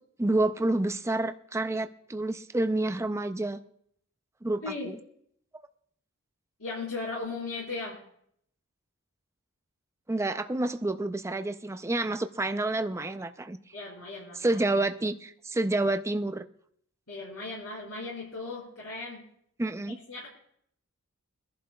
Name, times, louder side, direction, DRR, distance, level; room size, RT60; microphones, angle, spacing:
voice 1, 0.2-3.6 4.4-5.0 10.1-13.6 14.4-16.4 19.6-20.0, right 2 dB, 15° right, 8 dB, 0.5 m, -29 dB
voice 2, 6.6-8.0 13.7-14.8 17.1-19.2 20.1-20.3, left 3 dB, 75° left, -6 dB, 4.5 m, -37 dB
23.5 x 11.0 x 2.3 m, 0.69 s
head